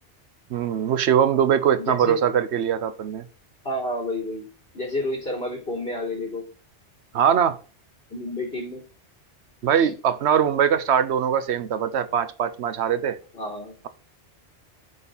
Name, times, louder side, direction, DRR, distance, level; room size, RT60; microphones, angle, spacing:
voice 1, 0.5-3.3 7.1-7.6 9.6-13.2, right 8 dB, 75° right, 1.0 m, -22 dB
voice 2, 1.8-2.2 3.6-4.4 4.7-6.5 8.1-8.8 9.7-9.9 13.3-13.8, left 1 dB, 60° left, 4.1 m, -30 dB
7.0 x 6.7 x 3.9 m
omnidirectional pair, 1.2 m